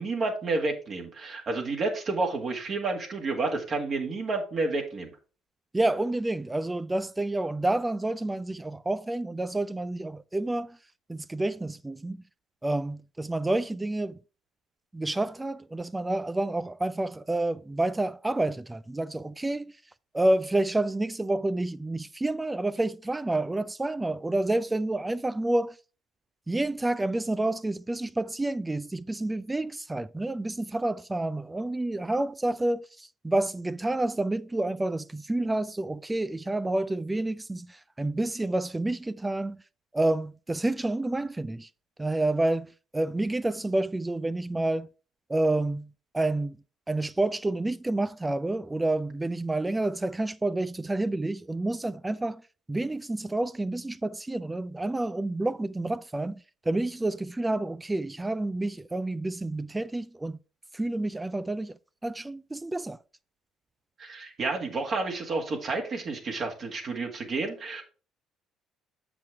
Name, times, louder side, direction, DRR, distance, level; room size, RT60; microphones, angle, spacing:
voice 1, 0.0-5.1 64.0-67.8, right 3 dB, 50° right, 1.9 m, -30 dB
voice 2, 5.7-10.8 11.1-12.2 12.6-14.2 14.9-19.7 20.1-25.8 26.5-39.6 39.9-41.7 42.0-42.7 42.9-44.9 45.3-45.9 46.1-46.6 46.9-52.4 52.7-60.4 60.7-61.8 62.0-63.0, right 2 dB, 15° right, 0.4 m, -29 dB
7.3 x 6.0 x 3.4 m
hypercardioid pair, 65°, 0 cm